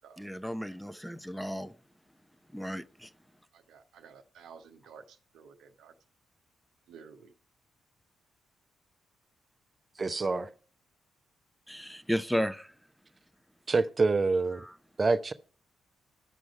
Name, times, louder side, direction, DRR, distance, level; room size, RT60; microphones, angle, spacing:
voice 1, 0.2-1.7 2.5-3.1 11.7-12.7, equal, ahead, 0.6 m, -33 dB
voice 2, 3.5-5.9 6.9-7.3, right 6 dB, 70° right, 0.8 m, -53 dB
voice 3, 10.0-10.5 13.7-14.6 15.0-15.3, right 3 dB, 35° right, 0.7 m, -26 dB
11.0 x 6.3 x 4.7 m
hypercardioid pair, 40°, 0 cm